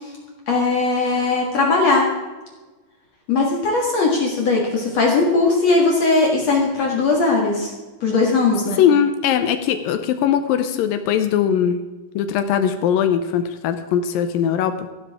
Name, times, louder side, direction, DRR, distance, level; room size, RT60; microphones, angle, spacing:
voice 1, 0.5-2.1 3.3-7.7 8.0-8.8, left 3 dB, 50° left, -1 dB, 2.3 m, -19 dB
voice 2, 8.8-11.8 12.2-14.8, left 8 dB, 75° left, 9 dB, 2.1 m, -20 dB
15.5 x 12.0 x 3.6 m, 1.2 s
omnidirectional pair, 4.8 m